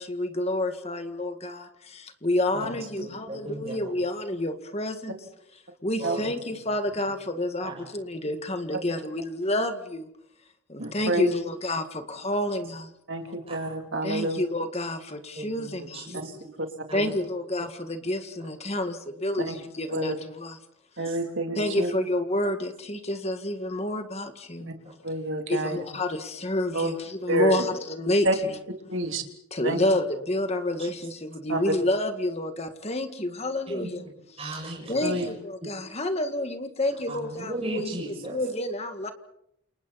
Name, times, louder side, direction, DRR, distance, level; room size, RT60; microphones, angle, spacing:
voice 1, 0.0-5.2 5.8-10.1 10.7-12.9 14.0-16.1 16.9-20.6 21.6-24.7 25.5-28.6 29.5-34.0 34.9-39.1, left 1 dB, 30° left, 7 dB, 2.0 m, -29 dB
voice 2, 3.0-3.8 6.0-6.6 7.6-7.8 10.8-10.9 12.3-12.4 13.5-13.7 15.3-16.5 16.9-17.0 21.0-21.2 24.8-24.9 30.8-30.9 31.5-31.6 33.7-33.9 34.4-35.2 37.1-38.4, right 1 dB, 25° right, -1 dB, 6.9 m, -37 dB
voice 3, 10.8-11.3 13.1-14.4 16.6-16.7 19.5-19.6 19.9-20.2 21.0-21.9 25.0-25.8 26.7-26.9 27.3-27.6 28.2-28.3 28.9-29.2 29.6-29.8 31.5-31.6 35.0-35.2, right 1 dB, 55° right, 4 dB, 3.1 m, -28 dB
29.5 x 29.0 x 4.3 m, 0.74 s
head